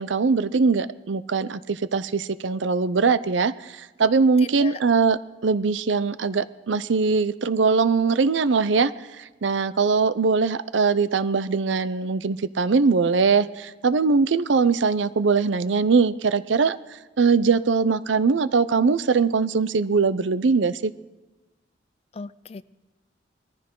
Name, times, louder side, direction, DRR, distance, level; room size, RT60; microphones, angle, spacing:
voice 1, 0.0-8.9 9.2-16.8 17.2-20.9, right 4 dB, 80° right, 16 dB, 0.6 m, -21 dB
voice 2, 4.4-4.8 22.1-22.6, left 4 dB, 35° left, 16 dB, 0.4 m, -37 dB
21.0 x 14.5 x 3.8 m, 1.1 s
head